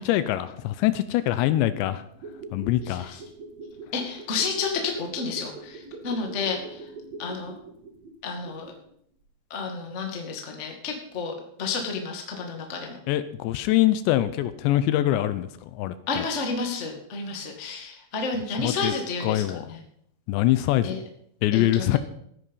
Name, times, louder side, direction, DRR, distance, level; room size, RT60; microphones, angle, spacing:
voice 1, 0.1-2.0 2.5-3.1 13.1-15.5 15.8-16.3 18.6-18.9 19.2-19.6 20.3-20.9 21.4-22.0, left 14 dB, 80° left, 13 dB, 2.8 m, -23 dB
sound 1, 2.1-8.9 9.2-9.3, right 3 dB, 50° right, 2.3 m, -43 dB
voice 2, 2.8-3.2 3.9-6.8 7.2-7.5 8.2-8.7 9.5-13.0 16.1-19.4 19.7-19.8 20.8-21.0 21.5-22.0, left 4 dB, 65° left, 2 dB, 0.7 m, -31 dB
15.5 x 9.8 x 5.5 m, 0.71 s
omnidirectional pair, 5.4 m